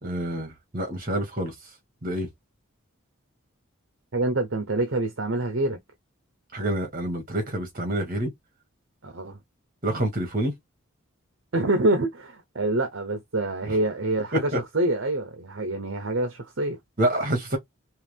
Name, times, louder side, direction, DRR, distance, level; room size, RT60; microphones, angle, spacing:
voice 1, 0.0-1.5 2.0-2.3 6.5-8.3 9.8-10.5 14.3-14.6 17.0-17.6, right 1 dB, 40° right, 2.1 m, -27 dB
voice 2, 4.1-5.8 9.0-9.4 11.5-16.8, right 2 dB, 60° right, 0.9 m, -26 dB
4.6 x 3.1 x 3.6 m
head